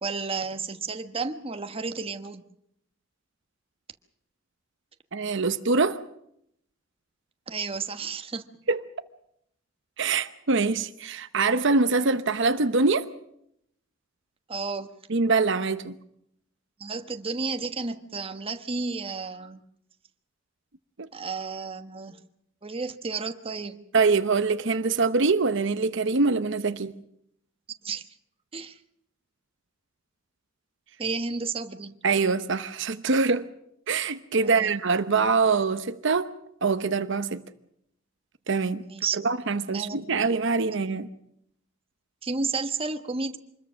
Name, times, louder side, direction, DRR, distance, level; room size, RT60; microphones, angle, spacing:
voice 1, 0.0-2.4 7.5-8.5 14.5-14.9 16.8-19.6 21.1-22.2 22.6-23.8 27.8-28.0 28.5-28.8 31.0-32.0 34.4-34.7 38.8-39.2 39.7-40.0 42.2-43.4, right 4 dB, 30° right, 1.2 m, -32 dB
voice 2, 5.1-6.0 8.7-8.8 10.0-13.1 15.1-16.0 21.0-21.1 23.9-27.0 32.0-33.5 33.9-36.3 36.6-37.4 38.5-38.8 39.1-41.1, right 4 dB, 65° right, 0.9 m, -24 dB
26.0 x 21.0 x 6.3 m
head